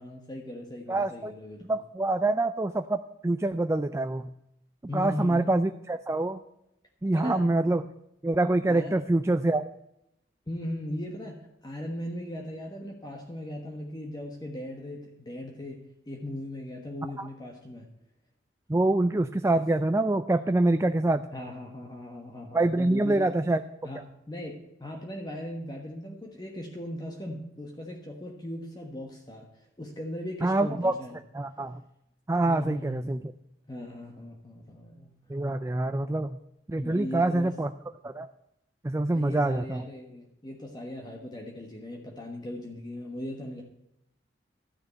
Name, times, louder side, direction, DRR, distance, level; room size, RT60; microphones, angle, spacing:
voice 1, 0.0-1.8 4.9-5.5 7.1-7.7 8.7-9.0 10.5-17.9 21.3-23.3 23.8-31.2 32.4-33.1 33.7-35.1 36.8-37.5 39.1-43.6, left 1 dB, 25° left, 1 dB, 1.3 m, -38 dB
voice 2, 0.9-1.3 1.7-4.3 4.9-6.4 7.0-7.8 8.2-9.7 17.2-17.3 18.7-21.2 22.5-23.6 30.4-30.9 31.3-31.8 32.3-33.2 35.3-36.4 36.7-37.7 38.0-38.3 38.8-39.8, right 2 dB, 15° right, 9 dB, 0.4 m, -25 dB
13.0 x 6.4 x 8.2 m, 0.83 s
head